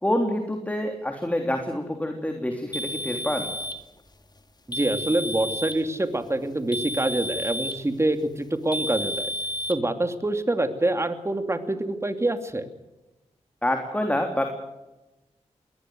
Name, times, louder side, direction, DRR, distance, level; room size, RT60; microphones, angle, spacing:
voice 1, 0.0-3.5 13.6-14.4, left 1 dB, 10° left, 4 dB, 3.4 m, -27 dB
sound 1, 2.7-3.8 4.7-5.8 6.7-7.9 8.7-9.8, equal, 35° left, 2.0 m, -31 dB
voice 2, 4.7-9.3 9.7-12.7, right 2 dB, 20° right, 8 dB, 2.6 m, -26 dB
21.5 x 19.0 x 7.8 m, 1.0 s
cardioid pair, 65°, 12 cm